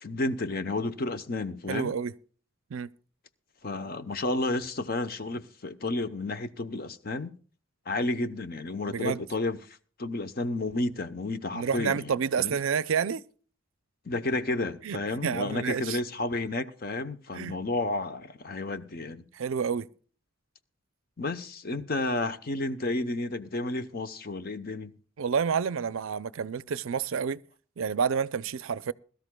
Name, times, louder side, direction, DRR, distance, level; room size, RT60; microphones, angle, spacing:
voice 1, 0.0-1.9 3.6-7.3 7.9-12.6 14.0-19.2 21.2-25.0, left 2 dB, 45° left, 0.8 m, -31 dB
voice 2, 1.7-2.1 2.7-2.9 8.9-9.2 11.5-13.2 14.8-16.0 17.3-17.6 19.3-19.9 25.2-27.4 27.8-28.9, right 6 dB, 70° right, 0.5 m, -29 dB
21.5 x 13.0 x 2.2 m
head